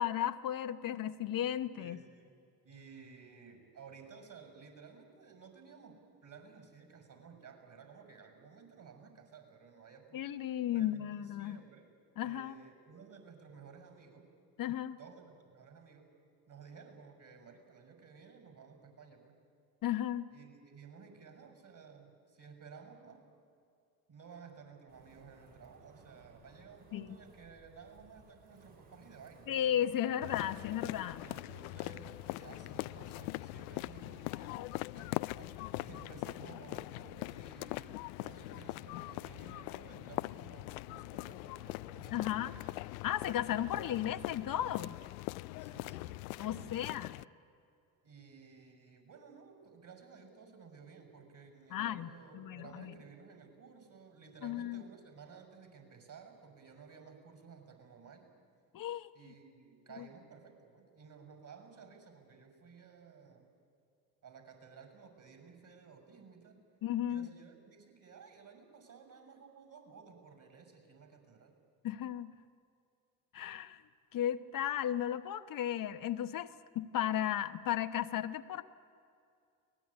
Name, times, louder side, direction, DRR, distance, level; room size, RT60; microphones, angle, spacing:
voice 1, 0.0-2.0 10.1-11.6 12.2-12.5 14.6-15.0 19.8-20.3 26.9-27.1 29.5-31.2 42.1-42.5 43.0-45.0 46.4-47.2 51.7-52.9 54.4-54.8 58.7-59.1 60.0-60.1 66.8-67.3 71.8-72.3 73.3-73.8 74.1-78.6, left 11 dB, 50° left, 9 dB, 1.0 m, -35 dB
voice 2, 1.8-2.3 2.6-10.2 10.7-11.9 12.2-14.3 15.0-16.1 16.5-19.4 20.3-23.2 24.1-29.5 31.2-42.7 45.6-47.1 48.0-58.3 59.1-63.5 64.2-66.6 67.1-71.5, right 5 dB, 45° right, 6 dB, 6.6 m, -55 dB
Wind, 24.9-39.6, right 3 dB, 70° right, 7.6 m, -61 dB
sound 1, 30.2-47.2, left 21 dB, 75° left, 0.5 m, -42 dB
23.0 x 19.0 x 9.8 m, 2.5 s
hypercardioid pair, 60°, 43 cm